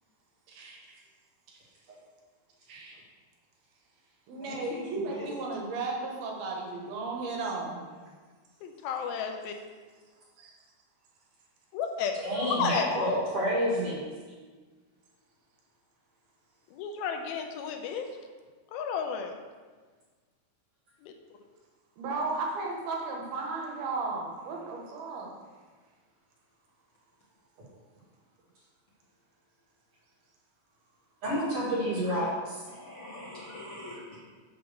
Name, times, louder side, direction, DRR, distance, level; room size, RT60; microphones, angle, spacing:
voice 1, 0.5-1.0 2.7-3.0 4.3-7.8 10.4-10.6 22.0-25.3, right 3 dB, 80° right, -1 dB, 3.1 m, -35 dB
voice 2, 4.4-5.2 32.7-34.2, left 2 dB, 50° left, -8 dB, 1.9 m, -42 dB
voice 3, 8.6-9.5 11.7-12.1 12.4-12.9 16.7-18.1 18.7-19.4 21.0-21.1, left 7 dB, 80° left, 4 dB, 2.4 m, -32 dB
voice 4, 12.1-14.0 31.2-32.6, equal, 45° right, -6 dB, 2.4 m, -29 dB
6.9 x 5.3 x 6.5 m, 1.4 s
omnidirectional pair, 4.4 m